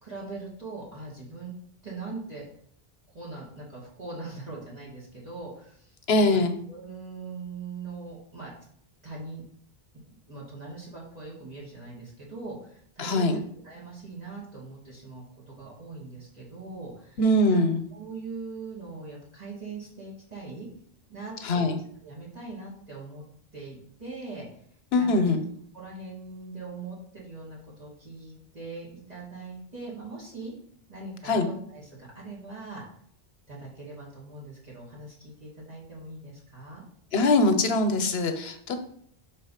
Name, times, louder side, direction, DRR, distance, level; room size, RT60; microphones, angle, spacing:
voice 1, 0.0-1.5 1.8-2.4 3.1-8.5 9.0-9.4 10.1-13.4 13.6-17.2 17.5-17.6 17.9-20.7 21.1-21.7 22.0-23.2 23.5-24.5 24.9-25.3 25.7-30.5 30.9-32.8 33.5-36.8, right 3 dB, 40° right, -6 dB, 2.4 m, -41 dB
voice 2, 6.1-6.5 13.0-13.4 17.2-17.8 21.4-21.8 24.9-25.4 31.3-31.5 37.1-38.8, left 2 dB, 80° left, 7 dB, 1.0 m, -22 dB
5.3 x 4.1 x 5.7 m, 0.64 s
omnidirectional pair, 1.0 m